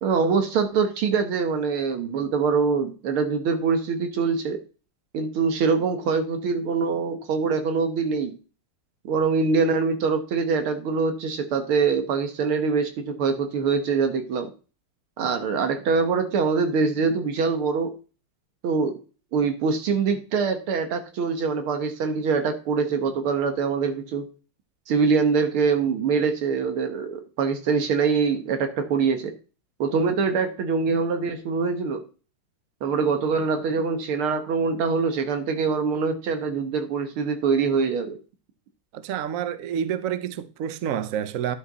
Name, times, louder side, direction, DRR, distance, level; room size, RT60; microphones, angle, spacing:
voice 1, 0.0-4.6 5.1-8.3 9.0-14.5 15.2-17.9 18.6-19.0 19.3-24.3 24.9-29.3 29.8-32.0 32.8-38.2, right 5 dB, 85° right, 2.2 m, -24 dB
voice 2, 38.9-41.6, right 9 dB, 65° right, 0.8 m, -28 dB
11.5 x 5.2 x 4.1 m
omnidirectional pair, 2.3 m